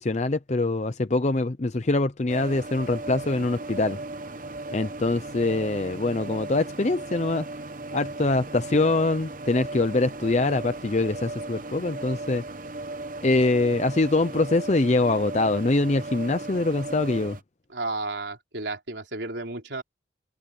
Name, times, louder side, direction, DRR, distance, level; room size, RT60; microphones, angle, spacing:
voice 1, 0.0-4.0 4.7-7.5 7.9-12.4 13.2-17.4, left 2 dB, 35° left, 0.6 m, -24 dB
sound 1, 2.3-17.4, right 2 dB, 45° right, 0.9 m, -37 dB
voice 2, 17.7-19.8, right 2 dB, 65° right, 3.7 m, -32 dB
open air
head